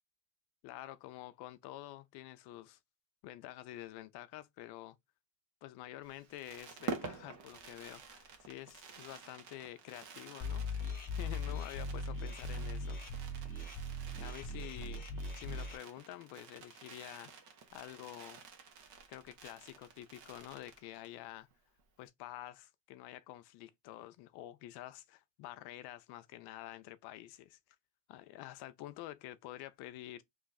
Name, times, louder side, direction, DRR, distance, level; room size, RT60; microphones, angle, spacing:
voice 1, 0.6-2.8 3.2-5.0 5.6-10.9 11.2-13.0 13.3-13.5 14.2-15.1 15.3-18.4 19.1-21.5 22.0-27.6 28.1-30.2, left 14 dB, 60° left, 0.5 m, -48 dB
Fireworks, 6.0-21.2 21.5-21.6 21.8-22.1, right 5 dB, 55° right, 1.1 m, -49 dB
sound 1, 10.4-15.8, left 2 dB, 20° left, 0.9 m, -39 dB
3.2 x 2.5 x 3.9 m
cardioid pair, 125°, 47 cm